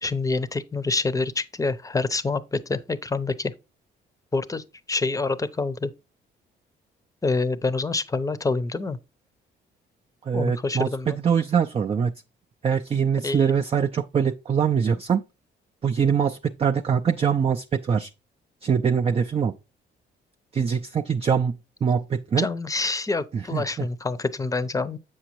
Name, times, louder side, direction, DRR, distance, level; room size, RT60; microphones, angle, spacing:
voice 1, 0.0-3.5 4.3-5.9 7.2-9.0 10.3-11.2 13.2-13.5 22.4-25.0, left 3 dB, 15° left, 0.7 m, -27 dB
voice 2, 10.2-12.2 12.6-15.2 15.8-18.1 18.6-19.5 20.5-22.5 23.3-23.9, right 7 dB, 30° right, 0.4 m, -23 dB
7.7 x 6.2 x 3.0 m
cardioid pair, 90°, 20 cm